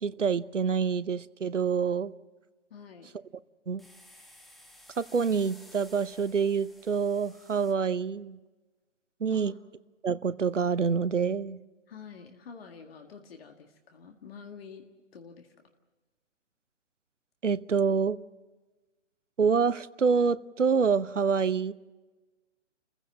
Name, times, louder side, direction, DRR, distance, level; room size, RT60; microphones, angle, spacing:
voice 1, 0.0-2.1 3.7-3.9 5.0-8.4 9.2-9.5 10.0-11.6 17.4-18.2 19.4-21.7, right 6 dB, 85° right, 18 dB, 0.8 m, -26 dB
voice 2, 2.7-3.1 9.3-9.6 11.9-14.8 15.1-15.5, left 6 dB, 55° left, 4 dB, 1.9 m, -48 dB
sound 1, 3.8-7.7, left 1 dB, ahead, 1.2 m, -55 dB
30.0 x 15.5 x 7.5 m, 1.2 s
figure-of-eight pair, 130°, 36 cm